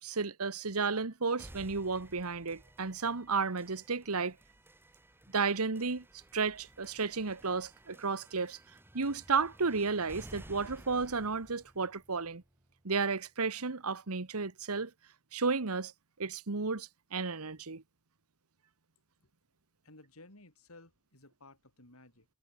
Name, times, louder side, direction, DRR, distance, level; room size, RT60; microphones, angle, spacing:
voice 1, 0.0-4.3 5.3-6.0 6.3-8.6 8.9-12.4 12.8-14.9 15.3-15.9 16.2-17.8, right 4 dB, 85° right, 1.4 m, -33 dB
sound 1, 1.4-13.3, right 1 dB, 10° right, 1.6 m, -55 dB
voice 2, 19.8-22.3, left 2 dB, 75° left, 5.7 m, -56 dB
head